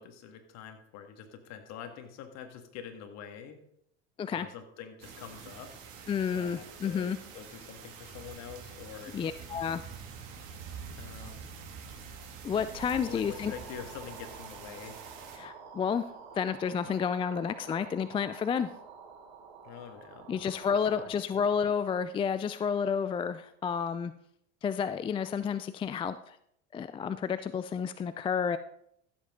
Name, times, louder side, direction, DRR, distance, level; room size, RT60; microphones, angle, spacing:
voice 1, 0.0-3.6 4.3-5.8 6.3-9.4 11.0-11.4 13.0-15.1 19.6-21.2, left 8 dB, 55° left, 6 dB, 1.9 m, -46 dB
sound 1, 5.0-15.4, right 6 dB, 60° right, 2.6 m, -46 dB
voice 2, 6.1-7.2 9.1-9.8 12.4-13.5 15.4-16.0 16.3-18.7 20.3-24.1 24.6-26.4 26.7-28.6, left 7 dB, 15° left, 13 dB, 0.3 m, -30 dB
sound 2, 12.7-21.1, right 6 dB, 75° right, 3.4 m, -49 dB
14.5 x 7.7 x 3.8 m, 0.71 s
hypercardioid pair, 95°, 33 cm